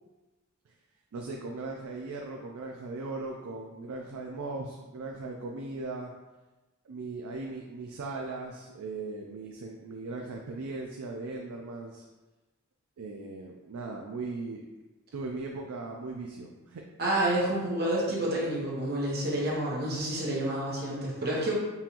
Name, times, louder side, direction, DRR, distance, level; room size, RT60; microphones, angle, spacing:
voice 1, 1.1-6.1 6.9-12.1 13.0-14.6 15.1-16.8, right 3 dB, 85° right, 1 dB, 0.4 m, -38 dB
voice 2, 17.0-21.5, right 1 dB, 50° right, -5 dB, 1.1 m, -29 dB
5.5 x 2.5 x 2.9 m, 1.1 s
head